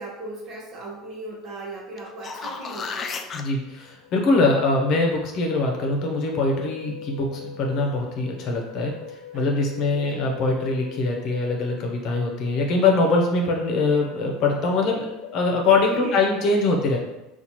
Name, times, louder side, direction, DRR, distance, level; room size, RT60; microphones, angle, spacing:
voice 1, 0.0-3.2 9.3-10.2 15.6-16.2, right 2 dB, 45° right, -2 dB, 1.0 m, -38 dB
sound 1, 2.0-3.4 8.2-8.3, left 5 dB, 30° left, 0.3 m, -33 dB
sound 2, 3.3-15.8, left 6 dB, 85° left, 0.6 m, -44 dB
voice 2, 3.3-8.9 9.3-17.0, left 3 dB, 50° left, 1 dB, 0.8 m, -23 dB
4.0 x 2.4 x 2.9 m, 0.97 s
supercardioid pair, 125°, 0 cm